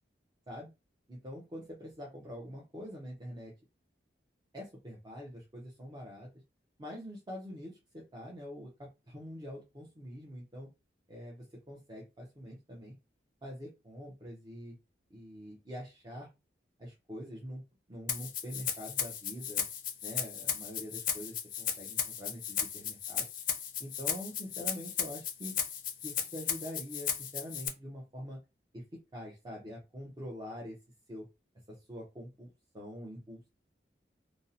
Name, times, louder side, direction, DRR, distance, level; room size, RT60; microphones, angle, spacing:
voice 1, 1.1-3.5 4.5-6.3 6.8-10.7 11.1-12.9 13.4-14.7 15.1-16.3 16.8-17.6 17.9-19.6 20.0-23.3 23.8-25.6 26.0-28.4 28.7-28.8 29.1-30.8 31.1-31.3 31.7-33.5, equal, 25° right, -2 dB, 0.5 m, -45 dB
Rattle (instrument), 18.1-27.7, left 9 dB, 45° left, 0.4 m, -35 dB
2.6 x 2.0 x 2.6 m, 0.26 s
head